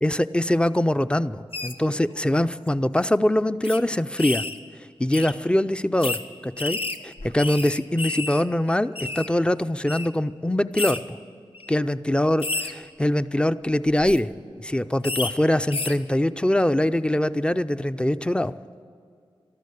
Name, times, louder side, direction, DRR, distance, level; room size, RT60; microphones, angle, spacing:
voice 1, 0.0-4.4 5.0-11.2 11.7-14.3 14.6-18.5, left 1 dB, 10° left, 13 dB, 0.5 m, -23 dB
sound 1, 1.5-1.7 2.5-2.7 3.0-3.1 3.6-3.8 4.2-4.6 5.1-5.3 6.0-6.2 6.6-8.4 8.7-9.3 9.9-10.1 10.8-11.0 11.5-11.7 12.4-12.7 13.9-14.2 15.0-15.3 15.7-16.0, left 3 dB, 70° left, 0.9 m, -30 dB
13.0 x 12.5 x 8.4 m, 2.3 s
cardioid pair, 40°, 10 cm